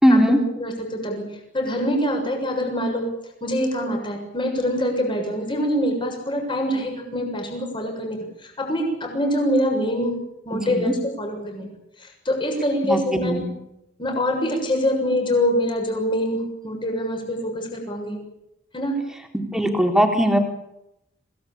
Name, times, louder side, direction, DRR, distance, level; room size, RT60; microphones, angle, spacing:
voice 1, 0.0-0.4 10.5-10.9 12.8-13.5 19.3-20.4, equal, 5° right, 3 dB, 3.9 m, -19 dB
voice 2, 0.6-1.3 1.5-3.0 3.4-10.1 10.4-11.7 12.0-13.4 14.0-18.2 18.7-19.0, equal, 25° left, 3 dB, 7.0 m, -24 dB
27.0 x 18.0 x 8.8 m, 0.85 s
head